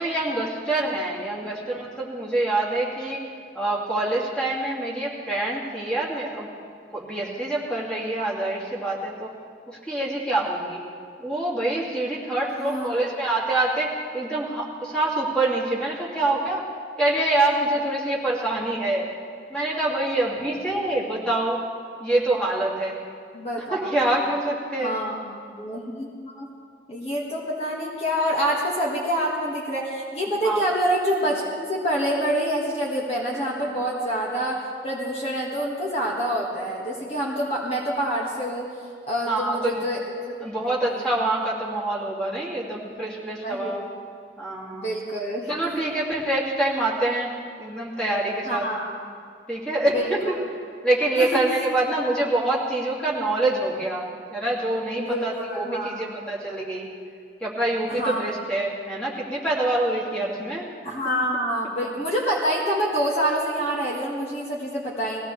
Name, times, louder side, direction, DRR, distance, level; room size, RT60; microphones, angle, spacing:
voice 1, 0.0-3.2 3.5-6.5 6.9-9.3 9.7-10.8 11.2-16.7 17.0-19.1 19.5-21.6 22.0-23.0 23.7-25.0 30.4-30.6 39.3-39.8 40.4-43.8 44.4-44.9 45.5-48.7 49.5-50.4 50.8-56.9 57.4-60.6, right 2 dB, 5° left, -5 dB, 2.4 m, -25 dB
voice 2, 12.6-13.0 23.3-23.9 24.8-26.5 26.9-38.7 39.1-40.4 40.8-41.1 43.4-43.8 44.7-45.8 48.5-48.9 49.9-50.4 51.2-51.4 55.0-56.2 57.9-58.2 60.8-65.2, equal, 35° left, -3 dB, 1.7 m, -27 dB
20.0 x 16.0 x 3.3 m, 2.2 s
head